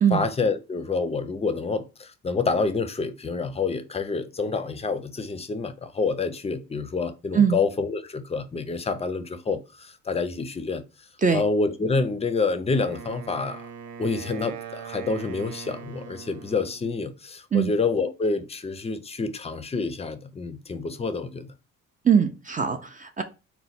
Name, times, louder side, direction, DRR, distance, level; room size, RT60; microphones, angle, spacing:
voice 1, 0.1-10.8 11.3-13.7 14.0-21.5, left 4 dB, 20° left, 0.5 m, -28 dB
Wind instrument woodwind instrument, 12.7-16.9, right 7 dB, 85° right, 0.7 m, -41 dB
voice 2, 22.0-23.2, right 7 dB, 25° right, 0.5 m, -21 dB
4.0 x 2.2 x 4.1 m
cardioid pair, 90°, 30 cm